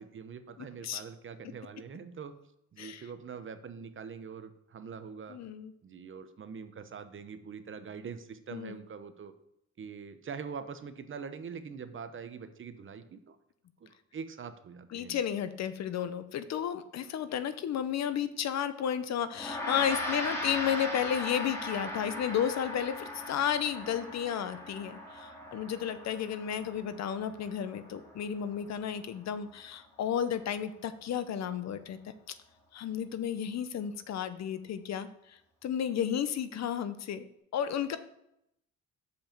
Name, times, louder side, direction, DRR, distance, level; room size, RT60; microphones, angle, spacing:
voice 1, 0.0-2.3 2.7-5.4 5.8-9.3 9.8-13.4 13.8-15.2, right 6 dB, 40° right, 10 dB, 0.9 m, -43 dB
voice 2, 5.3-5.7 8.5-8.8 14.9-32.0 32.7-37.2 37.5-38.0, left 9 dB, 60° left, 12 dB, 0.7 m, -33 dB
Gong, 19.3-28.9, left 1 dB, 10° left, 2.5 m, -39 dB
6.9 x 5.3 x 5.9 m, 0.79 s
cardioid pair, 90°, 30 cm